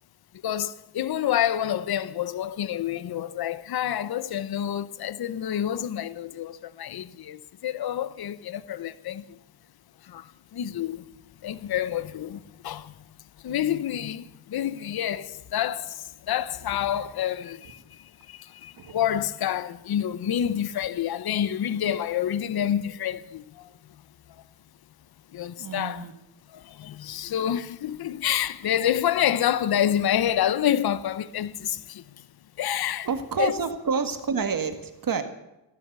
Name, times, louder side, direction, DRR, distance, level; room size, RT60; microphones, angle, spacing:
voice 1, 0.4-9.4 10.0-11.1 11.4-13.0 13.4-23.7 24.3-24.4 25.3-26.1 26.5-32.3 32.6-33.1 33.4-33.5, left 10 dB, 50° left, 0.8 m, -28 dB
voice 2, 25.6-26.1 33.0-35.2, right 5 dB, 45° right, 1.9 m, -28 dB
16.0 x 12.5 x 6.8 m
cardioid pair, 105°, 47 cm